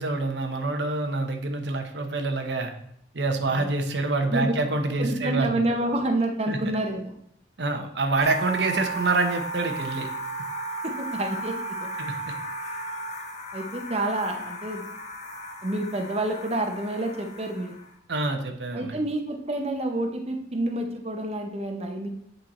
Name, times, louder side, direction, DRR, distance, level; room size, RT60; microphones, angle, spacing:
voice 1, 0.0-2.7 3.1-5.5 6.5-6.6 7.6-10.1 12.0-12.3 18.1-19.0, right 3 dB, 80° right, 5 dB, 0.9 m, -26 dB
voice 2, 4.9-7.1 10.8-11.9 13.5-14.8 15.6-17.7 18.7-22.1, right 1 dB, 35° right, 4 dB, 0.8 m, -28 dB
sound 1, 8.2-17.9, right 1 dB, 40° left, 0.9 m, -35 dB
7.8 x 4.5 x 4.3 m, 0.73 s
head